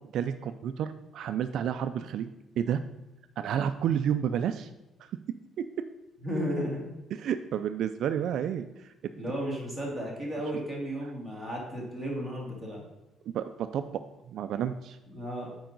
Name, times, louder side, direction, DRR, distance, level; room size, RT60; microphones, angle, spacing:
voice 1, 0.1-2.3 2.6-2.8 3.4-4.7 5.0-5.1 5.6-5.7 7.2-8.9 13.3-13.9 14.3-15.0, right 9 dB, 60° right, 10 dB, 0.3 m, -30 dB
voice 2, 6.2-6.9 9.1-12.8 15.1-15.5, equal, 5° left, -3 dB, 2.0 m, -34 dB
8.8 x 4.7 x 3.9 m, 0.94 s
cardioid pair, 160°, 0 cm